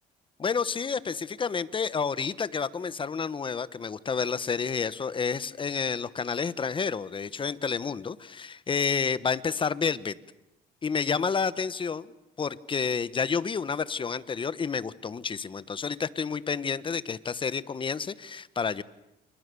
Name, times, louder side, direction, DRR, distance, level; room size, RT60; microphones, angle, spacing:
voice 1, 0.4-10.1 10.8-12.1 12.4-18.8, left 5 dB, 30° left, 17 dB, 1.2 m, -30 dB
29.5 x 29.0 x 7.0 m, 0.90 s
cardioid pair, 110°, 17 cm